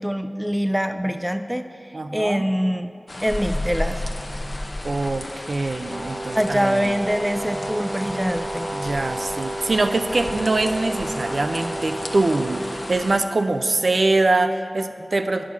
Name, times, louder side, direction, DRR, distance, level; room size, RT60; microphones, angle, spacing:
voice 1, 0.0-1.7 2.1-2.9 3.2-4.7 6.3-8.7, equal, 5° right, 9 dB, 0.3 m, -24 dB
voice 2, 1.9-2.5 4.8-6.9 8.7-15.5, right 2 dB, 65° right, 8 dB, 0.5 m, -23 dB
sound 1, 3.1-13.2, left 1 dB, 40° left, 0.7 m, -33 dB
Brass instrument, 5.9-12.9, right 1 dB, 30° right, 0.7 m, -31 dB
8.4 x 7.2 x 6.0 m, 2.5 s
wide cardioid pair, 70°, 0 cm